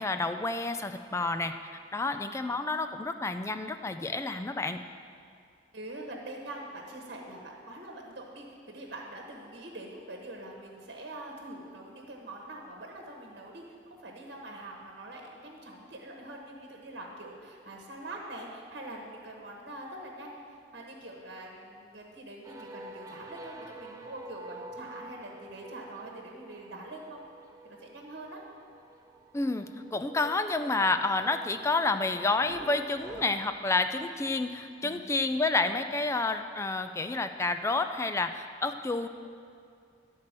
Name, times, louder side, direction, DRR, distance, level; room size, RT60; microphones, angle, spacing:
voice 1, 0.0-1.5 1.9-4.8 29.3-29.7 29.9-39.1, left 3 dB, 15° left, 8 dB, 0.3 m, -29 dB
voice 2, 5.7-27.2 27.6-28.4 34.8-35.0, right 1 dB, 60° right, 0 dB, 1.3 m, -44 dB
sound 1, 22.4-33.3, right 2 dB, 20° right, 0.7 m, -48 dB
11.5 x 4.5 x 7.4 m, 2.4 s
head